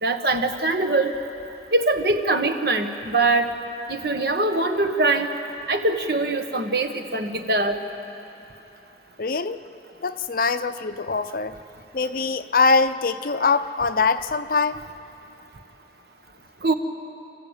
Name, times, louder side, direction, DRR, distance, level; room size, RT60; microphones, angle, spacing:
voice 1, 0.0-1.2 1.7-3.5 3.9-5.3 5.7-7.8 16.6-16.7, right 2 dB, 60° right, 6 dB, 1.4 m, -22 dB
voice 2, 9.2-9.6 10.0-11.6 11.9-14.8, left 4 dB, 50° left, 11 dB, 0.6 m, -23 dB
30.0 x 14.5 x 9.1 m, 3.0 s
head